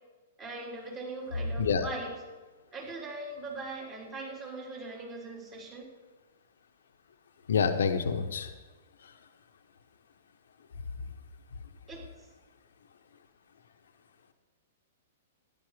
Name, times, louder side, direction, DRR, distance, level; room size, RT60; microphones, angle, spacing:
voice 1, 0.4-2.2 2.7-5.9 11.9-12.0, right 2 dB, 20° right, -2 dB, 3.8 m, -40 dB
voice 2, 7.5-8.5, left 6 dB, 65° left, 7 dB, 0.9 m, -27 dB
13.0 x 10.5 x 5.0 m, 1.3 s
figure-of-eight pair, 105°, 0 cm